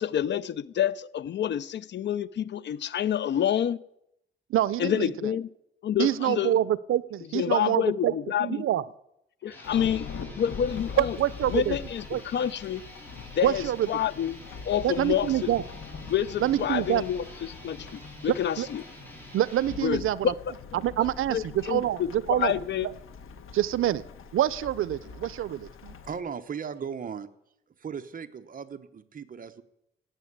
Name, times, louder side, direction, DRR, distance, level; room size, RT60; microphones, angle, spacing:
voice 1, 0.0-3.8 4.8-5.5 5.8-6.5 7.3-8.7 9.4-10.1 10.4-11.2 11.5-12.8 13.4-14.4 14.7-15.3 16.1-18.8 19.8-20.3 21.3-22.9, left 9 dB, 60° left, 0.5 m, -28 dB
voice 2, 4.5-5.1 6.0-8.1 8.4-8.9 11.0-11.8 12.1-12.2 13.4-13.9 14.8-15.6 16.4-17.0 18.6-18.7 19.3-20.3 20.7-22.5 23.5-24.0 24.3-25.9, right 12 dB, 85° right, 0.6 m, -26 dB
sound 1, 9.4-19.8, equal, 10° left, 4.0 m, -47 dB
Thunderstorm / Rain, 9.6-26.2, left 5 dB, 80° left, 1.4 m, -43 dB
voice 3, 26.0-27.3 27.8-29.6, right 6 dB, 40° right, 1.0 m, -37 dB
17.0 x 8.7 x 8.2 m
wide cardioid pair, 135°, 21 cm